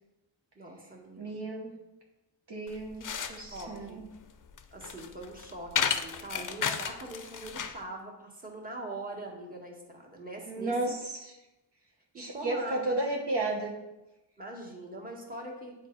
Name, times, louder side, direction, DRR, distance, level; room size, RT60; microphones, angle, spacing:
voice 1, 0.6-1.4 3.1-4.1 4.7-11.0 12.1-13.0 14.4-15.8, right 2 dB, 20° right, -1 dB, 1.7 m, -42 dB
voice 2, 1.2-1.7 2.5-4.1 10.4-11.3 12.1-13.7, right 2 dB, 65° right, -1 dB, 1.2 m, -33 dB
sound 1, 2.7-7.8, left 7 dB, 45° left, 0.5 m, -34 dB
8.7 x 4.5 x 3.9 m, 0.99 s
wide cardioid pair, 70°, 45 cm